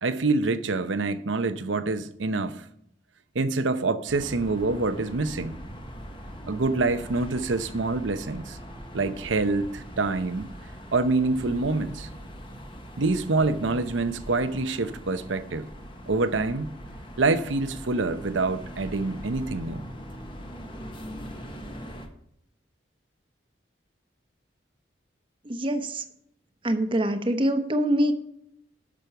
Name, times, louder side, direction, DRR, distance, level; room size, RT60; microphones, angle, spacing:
voice 1, 0.0-2.6 3.3-5.6 6.5-8.6 8.9-10.5 10.9-12.1 13.0-15.7 16.1-16.7 17.2-19.9, right 3 dB, 85° right, 0.8 m, -26 dB
sound 1, 4.1-22.1, equal, 25° left, 1.2 m, -41 dB
voice 2, 25.4-26.0 26.6-28.1, right 1 dB, 25° right, 0.9 m, -24 dB
12.0 x 6.3 x 5.9 m
head